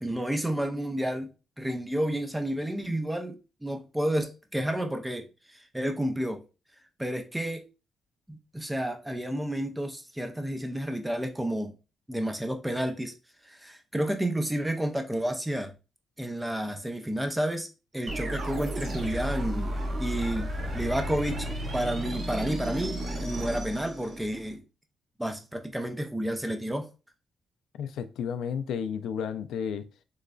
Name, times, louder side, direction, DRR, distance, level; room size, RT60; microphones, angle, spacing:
voice 1, 0.0-1.3 1.6-6.4 7.0-7.6 8.3-11.7 12.1-13.1 13.4-15.7 16.2-17.7 17.9-19.7 20.0-20.5 20.7-21.5 21.7-24.6 25.2-26.9, right 1 dB, 5° right, 0.4 m, -31 dB
sound 1, 18.1-24.5, equal, 35° right, 0.8 m, -33 dB
voice 2, 27.8-29.8, left 7 dB, 75° left, 0.3 m, -32 dB
3.8 x 3.1 x 2.2 m
cardioid pair, 170°, 0 cm